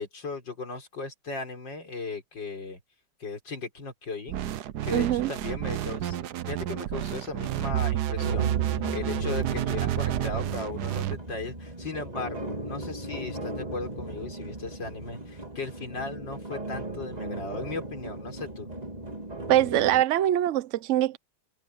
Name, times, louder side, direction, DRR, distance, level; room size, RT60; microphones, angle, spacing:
voice 1, 0.0-2.8 3.2-4.4 4.8-18.7, left 3 dB, 60° left, 5.1 m, -37 dB
sound 1, 4.3-11.2, right 13 dB, 65° right, 1.2 m, -30 dB
voice 2, 4.9-5.3 19.5-21.2, right 12 dB, 85° right, 0.6 m, -23 dB
sound 2, 8.2-20.0, right 1 dB, 20° right, 2.6 m, -37 dB
omnidirectional pair, 2.2 m